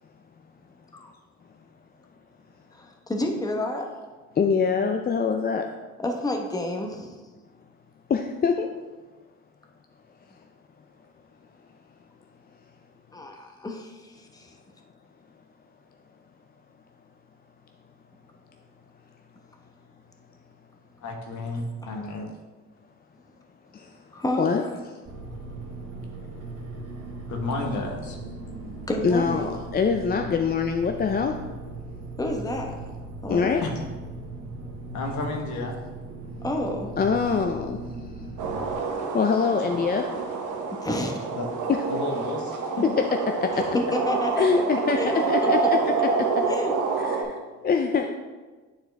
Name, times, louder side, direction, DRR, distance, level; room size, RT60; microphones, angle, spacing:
voice 1, 2.7-3.9 6.0-7.2 13.1-14.5 21.8-21.9 24.1-24.8 28.9-29.6 32.2-32.7 33.2-33.6 36.4-36.9 40.8-41.3 43.9-44.6 45.0-45.5 46.5-46.7, left 1 dB, 10° left, 2 dB, 0.9 m, -30 dB
voice 2, 4.4-5.6 8.1-8.7 24.4-24.6 29.0-31.3 33.3-33.6 37.0-37.8 39.1-40.1 43.4-43.6 44.4-45.6 47.0-47.3 47.6-48.1, left 5 dB, 30° left, 4 dB, 0.5 m, -24 dB
voice 3, 21.0-22.3 27.3-28.2 33.6-33.7 34.9-35.7 41.4-41.5 41.9-42.9, left 2 dB, 70° left, 2 dB, 1.3 m, -31 dB
sound 1, 25.0-38.8, right 2 dB, 50° right, 1.6 m, -38 dB
sound 2, 38.4-47.2, right 4 dB, 85° right, 1.0 m, -27 dB
9.4 x 4.3 x 3.3 m, 1.3 s
cardioid pair, 90°, 30 cm